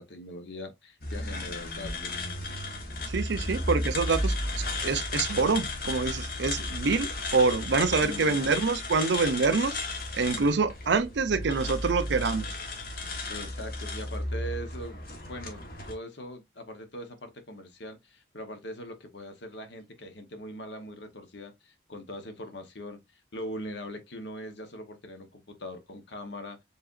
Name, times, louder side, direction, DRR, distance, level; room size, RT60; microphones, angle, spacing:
voice 1, 0.0-2.2 3.4-3.6 8.0-8.5 13.0-23.0 23.3-26.6, equal, 70° left, 1.0 m, -41 dB
sound 1, 1.0-15.9, left 2 dB, 50° left, 1.2 m, -34 dB
voice 2, 3.1-9.7 10.1-12.5, right 4 dB, 70° right, 0.5 m, -26 dB
4.9 x 3.4 x 2.5 m
head